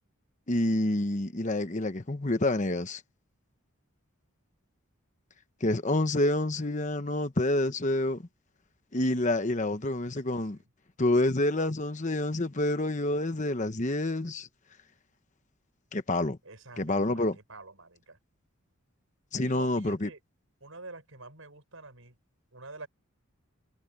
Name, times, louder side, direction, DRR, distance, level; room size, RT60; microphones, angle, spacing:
voice 1, 0.5-3.0 5.6-8.2 8.9-10.6 11.0-14.5 15.9-16.4 16.8-17.4 19.3-20.1, left 1 dB, 35° left, 1.0 m, -28 dB
voice 2, 9.9-10.6 16.4-18.2 19.4-20.2 20.6-22.1 22.5-22.9, right 3 dB, 65° right, 6.5 m, -47 dB
head